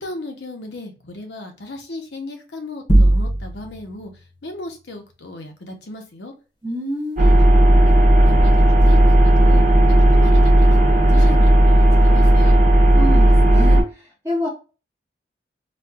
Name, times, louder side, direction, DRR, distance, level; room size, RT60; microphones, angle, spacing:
voice 1, 0.0-4.1 4.4-6.3 7.2-7.4 7.8-7.9 8.2-9.6 10.1-12.6, left 2 dB, 75° left, 4 dB, 0.8 m, -35 dB
sound 1, 2.9-3.9, right 1 dB, 25° left, 0.8 m, -16 dB
voice 2, 6.6-7.3 13.0-13.8 14.2-14.5, equal, 15° right, -5 dB, 0.7 m, -26 dB
sound 2, 7.2-13.8, right 1 dB, 45° right, 1.0 m, -13 dB
4.2 x 2.3 x 2.3 m, 0.33 s
head